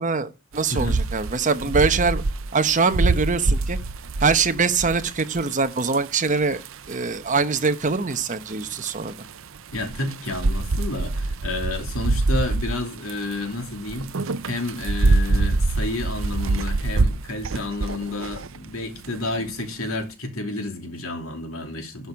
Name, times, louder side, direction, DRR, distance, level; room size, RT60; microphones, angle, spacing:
voice 1, 0.0-2.2 2.5-3.8 4.2-6.6 6.9-9.1, right 4 dB, 40° right, 1.0 m, -23 dB
sound 1, 0.5-19.9, right 3 dB, 70° right, 0.7 m, -25 dB
voice 2, 0.7-1.0 9.7-14.1 14.4-22.1, left 2 dB, 90° left, 2.8 m, -30 dB
11.5 x 6.2 x 5.8 m
head